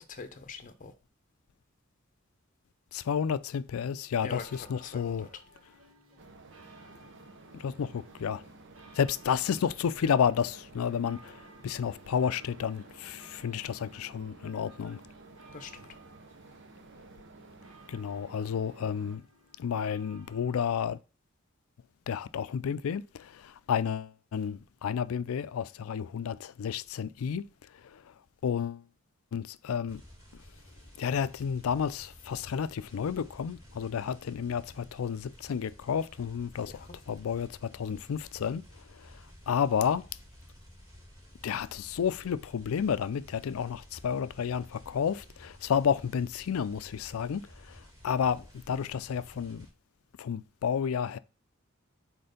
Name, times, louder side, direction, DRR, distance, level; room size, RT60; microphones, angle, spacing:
voice 1, 0.1-0.9 4.2-4.4 4.8-5.3 15.5-15.9 36.6-36.9, left 4 dB, 40° left, 0.7 m, -44 dB
voice 2, 2.9-5.3 7.6-8.4 8.9-15.0 17.9-19.2 19.6-21.0 22.1-27.5 27.9-28.0 28.4-28.8 29.3-30.0 31.0-38.6 39.0-39.1 39.5-40.0 41.4-47.8 48.0-49.7 50.2-51.2, left 7 dB, 85° left, 0.4 m, -31 dB
sound 1, 4.0-20.6, right 2 dB, 90° right, 1.3 m, -58 dB
sound 2, 6.2-19.2, right 3 dB, 60° right, 0.7 m, -53 dB
sound 3, 29.9-49.7, equal, 20° right, 2.2 m, -53 dB
4.4 x 4.3 x 5.0 m
head